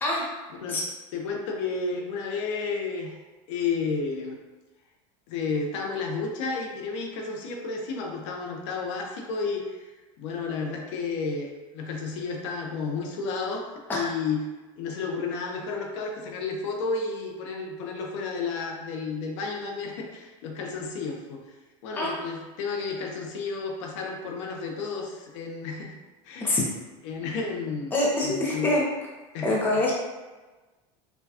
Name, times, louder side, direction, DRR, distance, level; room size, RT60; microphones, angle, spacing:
voice 1, 1.1-3.1 3.5-4.4 5.3-9.8 10.2-11.5 11.7-13.6 13.9-14.4 14.8-21.4 21.8-25.9 26.2-26.6 27.0-27.9 28.2-28.7 29.3-29.6, left 4 dB, 70° left, 1 dB, 0.6 m, -31 dB
voice 2, 27.9-28.8 29.4-29.9, left 2 dB, 10° left, -4 dB, 0.6 m, -25 dB
4.3 x 2.2 x 2.7 m, 1.2 s
cardioid pair, 160°, 16 cm